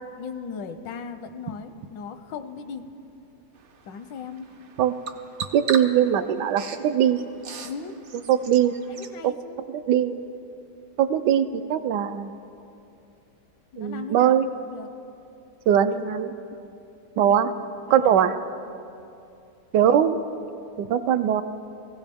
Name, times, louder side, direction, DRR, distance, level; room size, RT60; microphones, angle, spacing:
voice 1, 0.2-2.8 3.9-4.5 7.6-8.0 8.9-9.6 13.7-14.3 14.7-14.9 16.0-16.1 17.3-17.5 17.8-18.4, left 6 dB, 80° left, 9 dB, 1.4 m, -38 dB
Bird vocalization bird call bird song, 3.5-9.2, right 6 dB, 60° right, 0.8 m, -39 dB
voice 2, 5.5-7.2 8.3-8.7 9.2-9.3 9.9-10.1 11.0-12.3 13.8-14.5 15.7-16.3 17.2-17.5 17.9-18.3 19.7-20.2 20.8-21.4, right 9 dB, 75° right, 10 dB, 1.1 m, -21 dB
20.0 x 16.0 x 3.5 m, 2.6 s
omnidirectional pair, 2.0 m